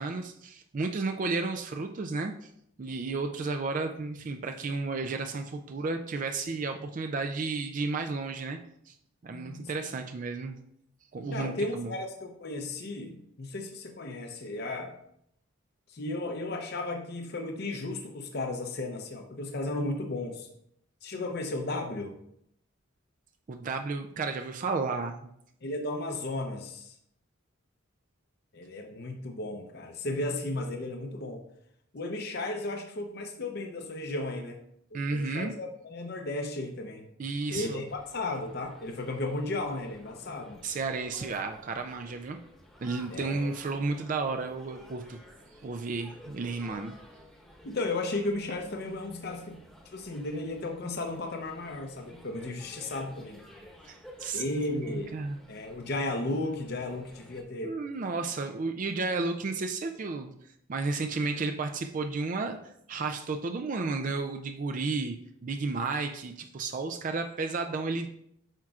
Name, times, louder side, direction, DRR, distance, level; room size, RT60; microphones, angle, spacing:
voice 1, 0.0-2.5 2.8-8.6 8.9-9.0 9.2-10.6 11.1-11.9 23.5-25.3 34.9-35.5 37.2-37.8 40.6-42.4 42.8-45.2 45.6-46.9 53.9-54.4 54.7-55.4 57.6-60.3 60.7-65.2 65.4-68.1, right 3 dB, 40° right, 5 dB, 0.4 m, -32 dB
voice 2, 9.3-9.7 11.3-15.0 15.9-20.5 21.0-22.1 25.6-27.0 28.5-31.4 31.9-34.6 34.9-37.0 37.5-40.6 43.1-43.5 47.6-49.6 49.9-53.4 54.3-55.1 55.5-57.8, left 2 dB, 50° left, 3 dB, 0.7 m, -34 dB
sound 1, 37.9-57.4, left 1 dB, ahead, 1.0 m, -53 dB
8.9 x 5.9 x 2.4 m, 0.73 s
head